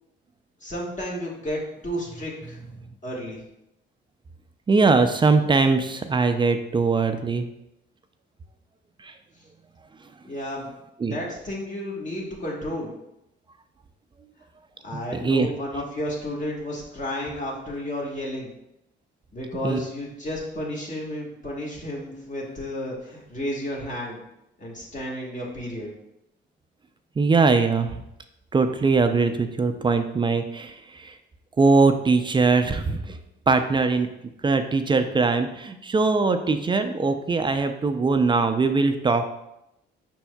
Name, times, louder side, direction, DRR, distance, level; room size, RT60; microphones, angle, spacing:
voice 1, 0.6-2.6 3.0-3.4 10.2-10.7 11.0-12.9 14.8-18.5 19.3-24.2 24.6-25.9, left 1 dB, 40° left, -3 dB, 1.4 m, -32 dB
voice 2, 4.7-7.5 9.0-9.1 11.0-11.1 14.9-15.5 19.6-19.8 27.2-27.9 28.5-31.1 31.6-33.2 33.5-34.1 34.4-39.2, right 4 dB, 25° right, 8 dB, 0.4 m, -21 dB
5.3 x 4.4 x 2.2 m, 0.84 s
cardioid pair, 90°, 20 cm